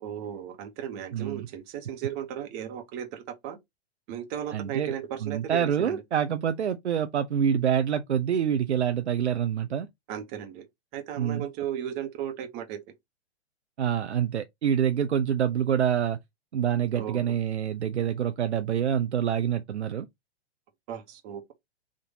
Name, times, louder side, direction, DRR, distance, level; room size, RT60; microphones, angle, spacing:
voice 1, 0.0-3.6 4.1-6.0 10.1-10.7 10.9-12.8 16.9-17.4 20.9-21.5, right 9 dB, 30° right, 1.0 m, -35 dB
voice 2, 1.1-1.5 4.5-4.9 5.2-9.9 11.2-11.4 13.8-16.2 16.5-20.1, right 9 dB, 85° right, 0.5 m, -26 dB
3.6 x 2.6 x 3.9 m
figure-of-eight pair, 115°, 33 cm